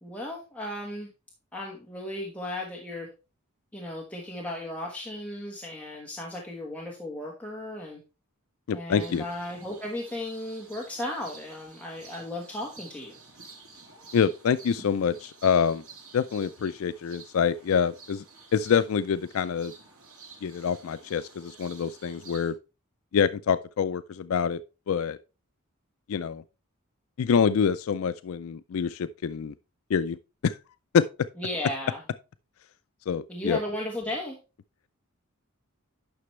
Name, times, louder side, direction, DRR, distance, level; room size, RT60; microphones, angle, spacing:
voice 1, 0.0-1.1 1.5-3.1 3.7-8.0 8.7-13.2 31.4-32.0 33.3-34.4, left 1 dB, 5° left, 1.3 m, -35 dB
voice 2, 8.7-9.2 14.1-15.8 16.1-18.2 18.5-19.7 20.4-22.5 23.1-24.6 24.9-25.2 26.1-26.4 27.2-29.5 29.9-30.2 30.4-30.6 30.9-31.0 33.1-33.6, left 7 dB, 75° left, 0.4 m, -26 dB
sound 1, 9.0-22.5, right 4 dB, 75° right, 3.1 m, -50 dB
9.7 x 6.0 x 3.1 m
head